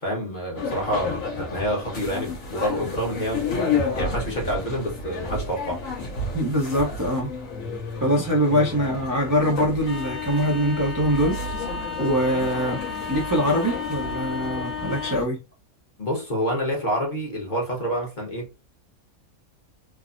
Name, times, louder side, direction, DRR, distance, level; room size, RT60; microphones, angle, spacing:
voice 1, 0.0-3.5 3.9-5.8 16.0-18.6, equal, 35° left, 1.0 m, -28 dB
sound 1, 0.6-15.2, left 4 dB, 65° left, 1.3 m, -30 dB
voice 2, 6.3-7.3 8.0-11.7 12.0-12.8 13.1-15.4, equal, 25° right, 0.4 m, -23 dB
3.3 x 2.0 x 2.5 m
omnidirectional pair, 1.5 m